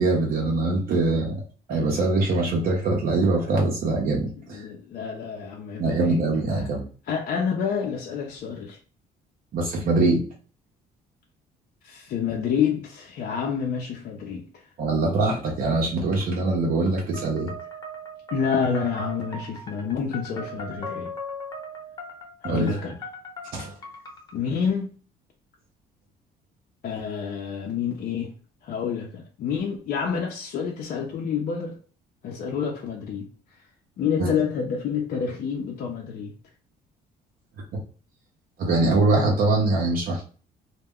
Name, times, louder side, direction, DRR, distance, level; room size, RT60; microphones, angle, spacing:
voice 1, 0.0-1.4 1.7-4.7 5.8-6.8 9.5-10.2 14.8-17.5 22.4-22.7 23.5-23.7 34.2-34.3 38.6-40.2, right 2 dB, 60° right, 0.7 m, -23 dB
voice 2, 4.5-6.2 6.5-6.7 7.1-8.8 11.8-14.4 18.3-21.1 22.4-23.0 24.3-24.9 26.8-28.3 28.6-31.7 32.2-33.3 34.0-36.3, left 6 dB, 55° left, 0.5 m, -28 dB
sound 1, 17.1-24.3, equal, 25° left, 0.9 m, -38 dB
2.2 x 2.1 x 3.5 m
cardioid pair, 110°, 17 cm